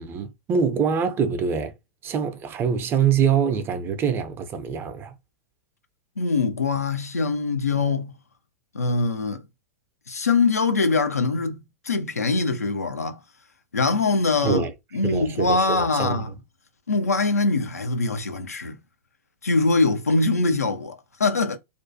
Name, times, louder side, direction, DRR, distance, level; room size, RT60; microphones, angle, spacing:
voice 1, 0.0-1.7 2.0-5.1 14.4-14.7 15.0-16.3, right 6 dB, 30° right, 0.5 m, -24 dB
voice 2, 6.2-8.1 8.7-9.4 10.1-13.2 13.7-14.6 14.9-16.3 16.9-18.8 19.4-21.6, left 3 dB, 90° left, 0.5 m, -23 dB
2.5 x 2.2 x 2.6 m
hypercardioid pair, 100°, 8 cm